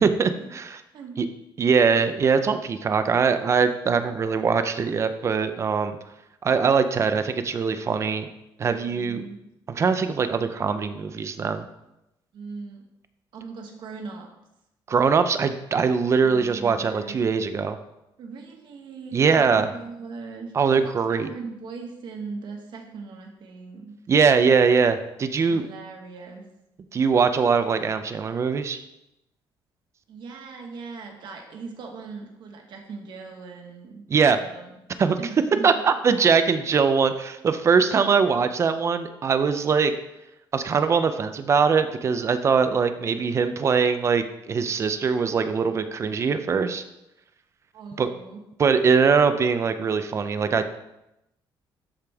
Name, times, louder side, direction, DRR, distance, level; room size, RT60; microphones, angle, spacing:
voice 1, 0.0-0.8 1.2-1.3 1.6-6.0 6.4-8.3 8.6-9.2 9.7-11.7 14.9-17.8 19.1-19.7 20.5-21.3 24.1-25.7 26.9-28.9 34.1-34.4 35.0-35.2 35.6-39.9 40.5-46.8 48.0-48.1 48.6-50.8, right 5 dB, 30° right, 10 dB, 0.5 m, -22 dB
voice 2, 8.6-9.4 12.3-12.8 13.3-14.3 16.2-17.2 18.2-23.9 25.4-26.5 30.1-34.8 35.2-35.7 47.7-48.4, right 4 dB, 60° right, 2 dB, 1.5 m, -39 dB
12.5 x 5.1 x 3.5 m, 0.88 s
cardioid pair, 165°, 9 cm